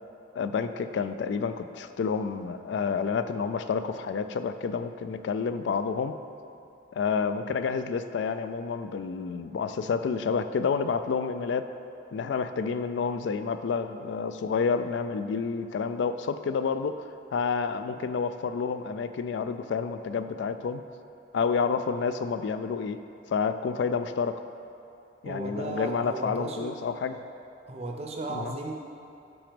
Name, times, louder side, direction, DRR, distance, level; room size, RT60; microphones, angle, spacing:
voice 1, 0.3-6.1 6.9-11.7 12.1-17.0 17.3-20.8 21.3-23.0 23.3-24.4 25.2-27.2 28.3-28.6, left 5 dB, 70° left, 11 dB, 0.3 m, -29 dB
voice 2, 25.2-26.8 27.7-28.7, right 2 dB, 35° right, 1 dB, 0.6 m, -35 dB
6.0 x 5.0 x 5.1 m, 2.7 s
head